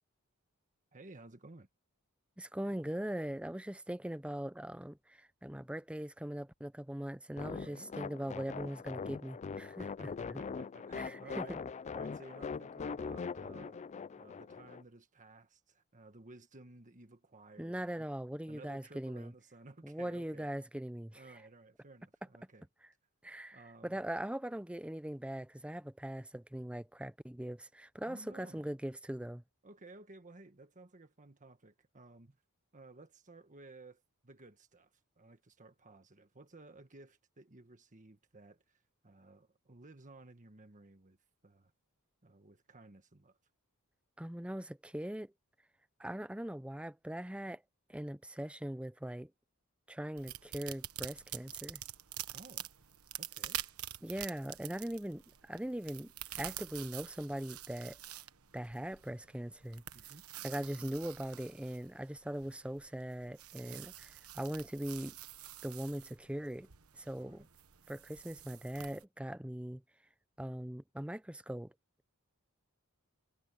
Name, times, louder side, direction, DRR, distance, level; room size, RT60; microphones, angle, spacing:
voice 1, 0.9-1.7 7.5-7.9 9.6-11.6 11.9-13.8 14.2-18.1 18.5-20.5 21.1-22.7 23.5-24.0 28.0-28.7 29.6-32.4 32.7-41.2 41.4-41.7 42.2-43.4 52.3-52.7 53.2-53.6 59.9-60.3 63.6-63.9 67.1-67.5, right 2 dB, 35° right, 1.5 m, -56 dB
voice 2, 2.4-9.9 10.9-11.6 17.6-19.3 19.8-21.2 23.2-29.4 44.2-45.3 46.0-47.6 47.9-49.3 49.9-51.8 54.0-58.0 58.5-59.8 60.4-63.9 64.3-65.1 65.6-66.7 66.9-67.4 67.9-69.8 70.4-71.7, right 1 dB, 5° right, 0.6 m, -41 dB
sound 1, 7.4-14.8, left 5 dB, 30° left, 0.3 m, -42 dB
sound 2, 50.2-69.0, right 12 dB, 75° right, 1.3 m, -47 dB
head